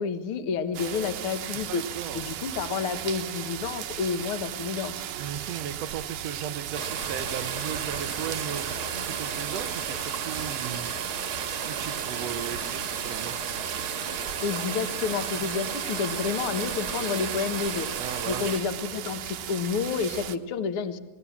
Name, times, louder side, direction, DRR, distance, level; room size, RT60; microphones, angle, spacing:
voice 1, 0.0-1.8 2.1-4.9 14.4-17.9 18.2-21.0, left 6 dB, 55° left, 8 dB, 1.6 m, -30 dB
sound 1, 0.7-20.4, right 10 dB, 70° right, 2.4 m, -36 dB
voice 2, 1.7-2.2 5.2-10.9 11.6-13.3 18.0-18.5, right 9 dB, 85° right, 6 dB, 1.4 m, -36 dB
sound 2, 6.7-18.6, right 6 dB, 50° right, 1.9 m, -34 dB
29.0 x 19.0 x 7.2 m, 1.1 s
omnidirectional pair, 4.2 m